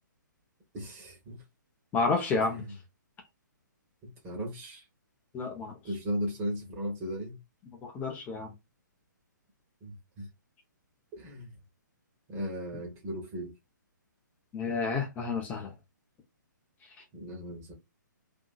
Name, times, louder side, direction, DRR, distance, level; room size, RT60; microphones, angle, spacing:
voice 1, 0.7-1.4 2.5-2.7 4.0-4.8 5.8-7.4 9.8-10.3 11.2-11.5 12.3-13.5 17.1-17.7, equal, 20° right, 1.1 m, -36 dB
voice 2, 1.9-2.6 5.3-5.8 7.8-8.5 14.5-15.7, left 4 dB, 15° left, 0.5 m, -30 dB
2.6 x 2.6 x 2.3 m
figure-of-eight pair, 130°, 11 cm